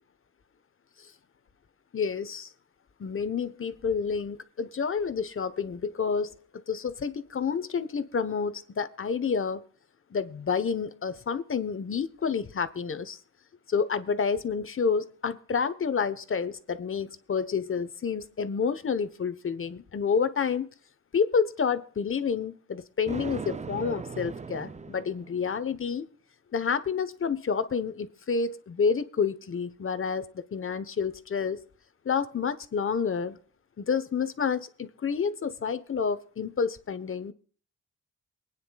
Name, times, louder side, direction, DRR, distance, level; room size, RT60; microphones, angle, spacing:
voice 1, 1.9-2.5 3.0-6.3 6.7-9.6 10.1-13.2 13.7-20.7 21.1-26.1 26.5-31.6 32.0-33.4 33.8-37.3, left 6 dB, 45° left, 12 dB, 1.1 m, -29 dB
Thunder, 23.1-25.6, right 5 dB, 25° right, 0.5 m, -38 dB
23.5 x 9.5 x 2.4 m, 0.43 s
cardioid pair, 70°, 29 cm